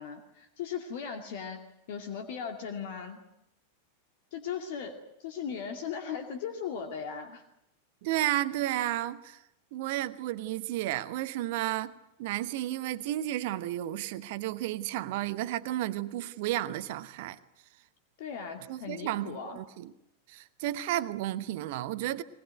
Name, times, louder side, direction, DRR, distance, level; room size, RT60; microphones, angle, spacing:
voice 1, 0.0-3.2 4.3-7.4 18.2-19.6, left 7 dB, 50° left, 2.4 m, -38 dB
voice 2, 8.0-9.4 9.7-11.9 12.2-17.4 18.7-19.9 20.3-22.2, right 14 dB, 50° right, 1.0 m, -32 dB
21.5 x 21.0 x 9.3 m
figure-of-eight pair, 90°, 0 cm